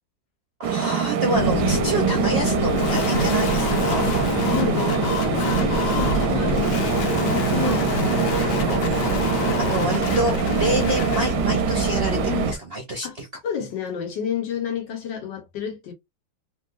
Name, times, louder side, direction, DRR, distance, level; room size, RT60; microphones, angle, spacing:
voice 1, 0.6-4.0 7.6-7.9 9.3-13.3, right 2 dB, 50° right, 0.7 m, -27 dB
sound 1, 0.6-12.5, right 8 dB, 75° right, 1.1 m, -24 dB
sound 2, 1.3-12.5, left 2 dB, 55° left, 0.9 m, -26 dB
sound 3, 2.6-11.4, left 6 dB, 90° left, 1.4 m, -31 dB
voice 2, 4.5-8.5 12.1-12.5 13.0-13.1 13.4-15.9, left 8 dB, 75° left, 1.6 m, -31 dB
3.2 x 2.8 x 2.5 m
omnidirectional pair, 2.0 m